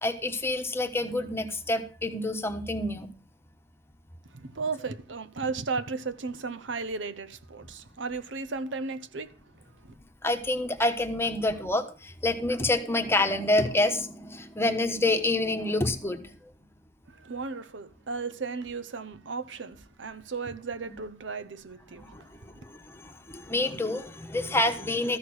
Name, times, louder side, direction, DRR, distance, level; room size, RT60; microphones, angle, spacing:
voice 1, 0.0-3.1 10.2-16.5 22.0-25.2, left 2 dB, 15° left, 1.2 m, -28 dB
voice 2, 4.3-9.4 9.8-9.9 17.1-22.2, right 4 dB, 70° right, 0.8 m, -35 dB
14.0 x 6.6 x 6.3 m
head